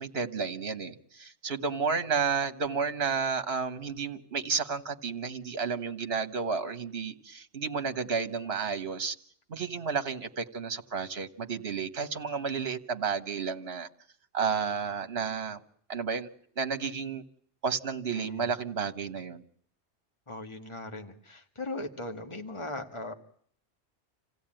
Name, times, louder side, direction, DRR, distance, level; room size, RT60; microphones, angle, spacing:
voice 1, 0.0-9.1 9.5-13.9 14.3-15.6 15.9-16.3 16.6-17.2 17.6-19.4, right 5 dB, 60° right, 9 dB, 1.7 m, -32 dB
voice 2, 18.1-18.5 20.3-23.1, left 2 dB, 25° left, 5 dB, 2.2 m, -39 dB
28.0 x 16.5 x 9.1 m, 0.63 s
omnidirectional pair, 1.2 m